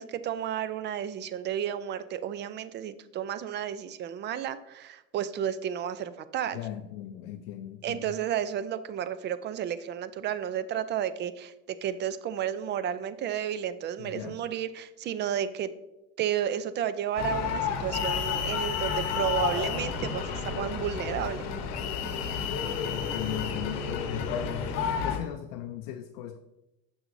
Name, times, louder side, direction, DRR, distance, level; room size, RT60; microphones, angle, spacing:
voice 1, 0.0-6.6 7.8-15.7 16.2-21.4, right 9 dB, 35° right, 15 dB, 0.4 m, -32 dB
voice 2, 6.5-8.1 14.0-14.4 22.9-26.4, left 11 dB, 75° left, 6 dB, 0.5 m, -38 dB
sound 1, 17.2-25.2, left 6 dB, 55° left, 0.9 m, -31 dB
6.3 x 6.1 x 2.6 m, 0.95 s
supercardioid pair, 100°, 30 cm